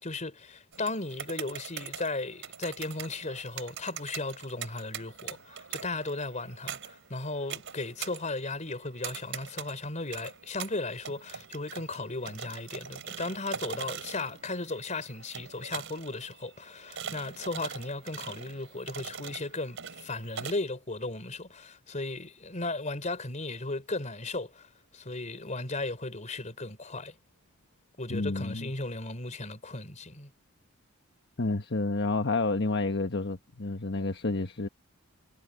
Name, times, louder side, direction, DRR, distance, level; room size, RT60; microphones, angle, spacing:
voice 1, 0.0-27.1 28.0-30.3, left 2 dB, 35° left, 3.9 m, -36 dB
sound 1, 0.7-20.5, right 7 dB, 60° right, 5.2 m, -43 dB
voice 2, 28.1-28.7 31.4-34.7, left 3 dB, 50° left, 1.3 m, -29 dB
head